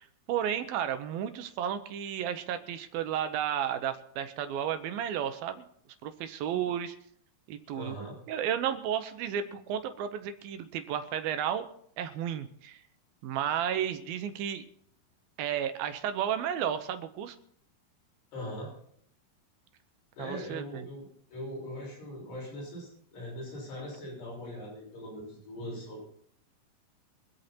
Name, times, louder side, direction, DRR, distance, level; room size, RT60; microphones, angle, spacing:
voice 1, 0.0-5.7 6.0-7.0 7.5-8.0 8.3-11.7 12.0-12.8 13.2-14.6 15.4-17.4 20.2-20.9, right 9 dB, 75° right, 9 dB, 2.6 m, -33 dB
voice 2, 7.7-8.2 18.3-18.7 20.2-26.1, equal, 85° left, -3 dB, 8.4 m, -41 dB
24.5 x 8.4 x 4.3 m, 0.65 s
omnidirectional pair, 4.5 m